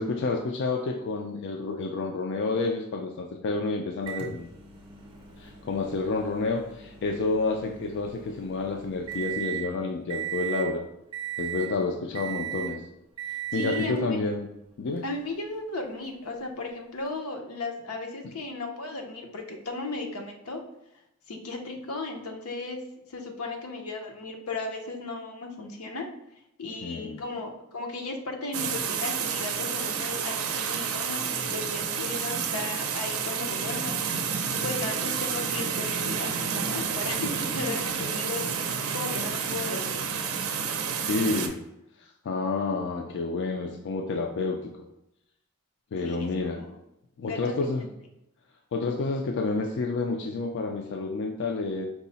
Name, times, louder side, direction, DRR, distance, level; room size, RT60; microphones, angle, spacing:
voice 1, 0.0-4.5 5.4-10.8 11.4-12.8 13.5-14.5 14.8-15.0 26.8-27.2 41.1-41.6 42.0-44.6 45.9-46.6 47.2-47.9 48.7-51.9, left 3 dB, 55° left, 3 dB, 0.4 m, -29 dB
Microwave oven, 4.1-9.7 10.1-10.7 11.1-11.7 12.1-12.8 13.2-14.0 15.0-15.1 17.1-17.2, right 10 dB, 25° right, 0.6 m, -37 dB
voice 2, 13.5-14.2 15.0-20.6 21.3-22.8 23.1-26.1 26.6-34.0 34.6-40.0 46.0-46.7 47.2-47.5, left 3 dB, 85° left, 3 dB, 0.7 m, -35 dB
sound 1, 28.5-41.5, right 6 dB, 70° right, 0.5 m, -30 dB
4.7 x 2.0 x 3.9 m, 0.85 s
head